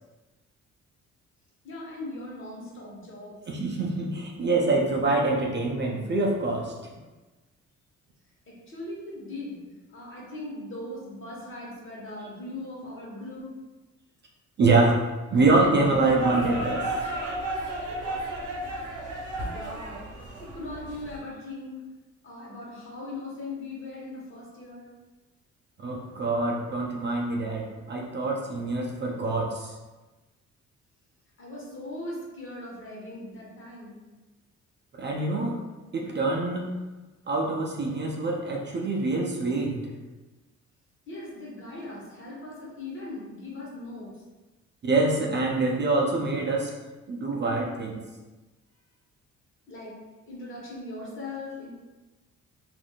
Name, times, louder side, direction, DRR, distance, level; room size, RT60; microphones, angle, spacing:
voice 1, 1.6-3.4 8.5-9.6 9.9-13.5 19.5-20.0 20.4-21.8 22.2-24.9 31.4-34.0 41.1-44.1 49.7-49.9 50.3-51.7, left 2 dB, 40° left, -4 dB, 1.2 m, -39 dB
voice 2, 3.5-6.7 14.6-16.9 25.8-29.7 35.0-35.6 35.9-36.7 37.3-39.9 44.8-46.7 47.1-48.0, right 2 dB, 35° right, -1 dB, 0.5 m, -25 dB
sound 1, 15.3-21.2, right 1 dB, 80° right, 0.7 m, -33 dB
3.4 x 2.5 x 2.3 m, 1.2 s
cardioid pair, 90°, 30 cm